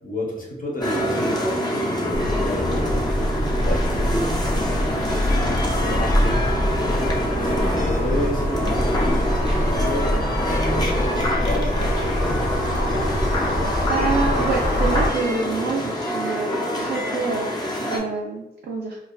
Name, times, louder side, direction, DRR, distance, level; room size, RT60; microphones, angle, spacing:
voice 1, 0.0-12.3, equal, 55° left, -2 dB, 0.8 m, -32 dB
sound 1, 0.8-18.0, equal, 25° left, 0.6 m, -26 dB
sound 2, 2.1-15.1, equal, 85° left, 0.7 m, -24 dB
voice 2, 13.9-19.0, right 4 dB, 80° right, -1 dB, 0.4 m, -27 dB
2.5 x 2.2 x 2.2 m, 0.94 s
wide cardioid pair, 85°, 17 cm